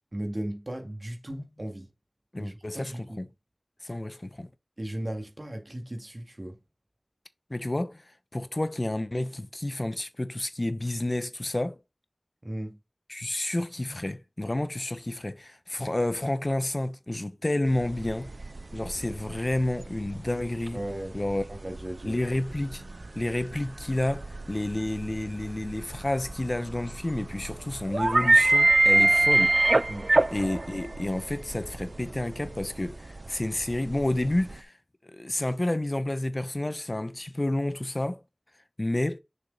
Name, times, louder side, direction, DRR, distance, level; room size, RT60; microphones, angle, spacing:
voice 1, 0.1-1.9 2.4-3.2 4.8-6.6 12.4-12.8 20.7-21.2 21.5-22.2 29.9-30.1, right 1 dB, 60° right, 1.9 m, -36 dB
voice 2, 2.3-3.3 3.8-4.5 7.5-8.0 8.3-11.8 13.1-18.3 18.7-20.8 21.1-21.4 22.0-22.8 23.2-29.5 30.3-34.7 35.0-38.2 38.8-39.2, left 1 dB, 50° left, 0.9 m, -30 dB
sound 1, 17.7-34.6, right 2 dB, 90° right, 0.4 m, -26 dB
6.6 x 4.9 x 4.0 m
wide cardioid pair, 40°, 0 cm